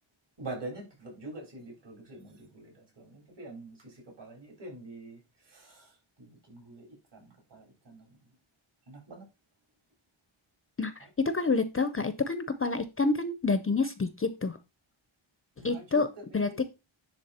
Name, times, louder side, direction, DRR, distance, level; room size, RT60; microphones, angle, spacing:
voice 1, 0.4-8.2 8.9-9.2 11.0-11.1 15.6-16.6, right 2 dB, 60° right, 4.0 m, -45 dB
voice 2, 11.2-14.6 15.6-16.1 16.3-16.7, left 3 dB, 30° left, 0.6 m, -28 dB
10.0 x 3.5 x 4.2 m
wide cardioid pair, 140°, 48 cm